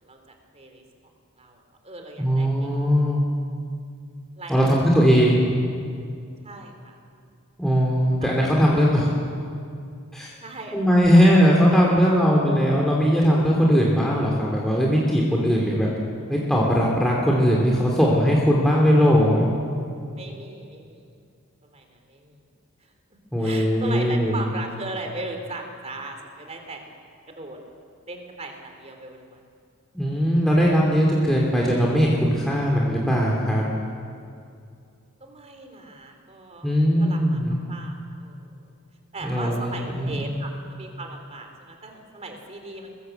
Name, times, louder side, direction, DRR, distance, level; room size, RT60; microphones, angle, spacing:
voice 1, 0.0-0.8 1.4-2.7 4.4-4.8 6.4-7.0 8.2-8.8 9.1-9.2 10.4-11.2 11.8-12.4 20.1-21.1 21.6-22.4 23.4-27.0 27.3-27.6 28.1-29.4 35.2-36.7 37.0-37.4 37.7-38.7 39.1-42.9, right 2 dB, 30° right, 4 dB, 3.5 m, -38 dB
voice 2, 2.2-3.3 4.5-5.5 7.6-9.1 10.1-10.3 10.7-15.9 16.3-19.5 23.3-24.5 29.9-33.7 36.6-37.6 39.2-40.3, equal, ahead, -3 dB, 2.9 m, -19 dB
23.5 x 21.5 x 8.0 m, 2.4 s
head